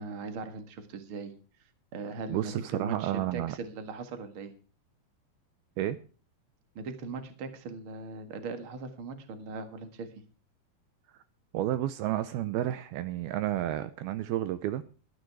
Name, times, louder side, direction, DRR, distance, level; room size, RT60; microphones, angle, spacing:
voice 1, 0.0-1.3 1.9-4.5 6.7-10.1, right 4 dB, 60° right, 1.4 m, -39 dB
voice 2, 2.3-3.6 5.8-6.0 11.5-14.8, right 13 dB, 80° right, 2.3 m, -31 dB
13.0 x 12.0 x 4.7 m
omnidirectional pair, 5.0 m